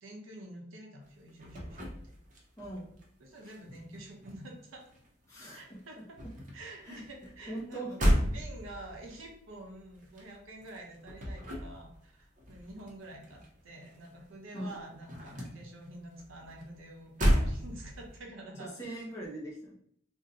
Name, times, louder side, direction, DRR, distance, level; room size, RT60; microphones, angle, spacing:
voice 1, 0.0-2.1 3.2-4.8 5.5-6.2 6.5-19.0, right 1 dB, 85° right, 1 dB, 0.8 m, -48 dB
sound 1, 1.1-3.1 3.3-5.3 5.5-14.2 14.5-18.2, equal, 40° right, 0.6 m, -34 dB
voice 2, 2.6-3.1 5.3-6.0 6.8-7.0 7.5-8.1 14.5-14.7 18.6-19.7, right 1 dB, 15° left, -5 dB, 0.6 m, -41 dB
2.6 x 2.1 x 3.9 m, 0.67 s
head